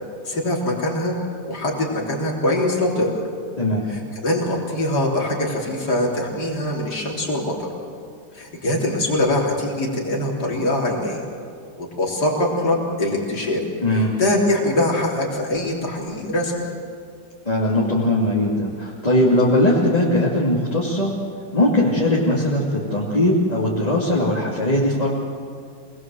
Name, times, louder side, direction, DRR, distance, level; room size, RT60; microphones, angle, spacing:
voice 1, 0.3-1.2 1.5-3.1 3.9-7.7 8.3-11.2 11.8-13.6 14.2-16.7, left 1 dB, 60° left, -3 dB, 4.2 m, -23 dB
voice 2, 13.8-14.1 17.4-21.1 21.5-25.1, left 1 dB, 20° left, -5 dB, 2.7 m, -19 dB
27.0 x 20.0 x 7.8 m, 2.3 s
omnidirectional pair, 2.0 m